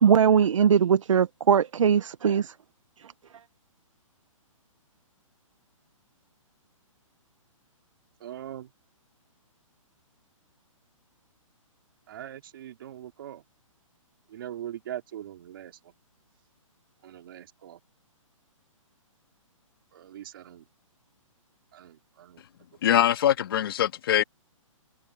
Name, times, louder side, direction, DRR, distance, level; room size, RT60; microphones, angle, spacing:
voice 1, 0.0-2.5, right 7 dB, 65° right, 1.2 m, -20 dB
voice 2, 8.2-8.7 12.1-13.4 14.3-15.9 17.0-17.8 19.9-20.6 21.7-22.4, right 11 dB, 40° right, 4.0 m, -41 dB
voice 3, 22.8-24.2, left 11 dB, 40° left, 2.3 m, -22 dB
hypercardioid pair, 170°, 18 cm